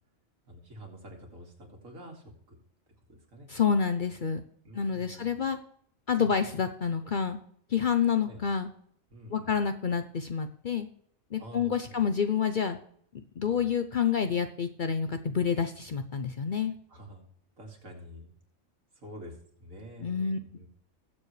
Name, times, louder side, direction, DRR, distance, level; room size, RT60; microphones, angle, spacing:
voice 1, 0.5-2.6 3.1-3.5 4.6-5.3 6.2-6.4 8.2-8.4 9.1-9.6 11.4-12.0 13.4-13.6 16.9-17.2 17.6-18.3 19.0-20.7, equal, 85° right, 1 dB, 2.8 m, -47 dB
voice 2, 3.5-4.4 4.7-5.6 6.1-7.4 7.7-8.7 9.3-10.9 11.3-12.8 13.4-16.7 20.0-20.4, left 7 dB, 50° left, 8 dB, 0.6 m, -28 dB
20.0 x 7.2 x 3.2 m, 0.63 s
omnidirectional pair, 1.4 m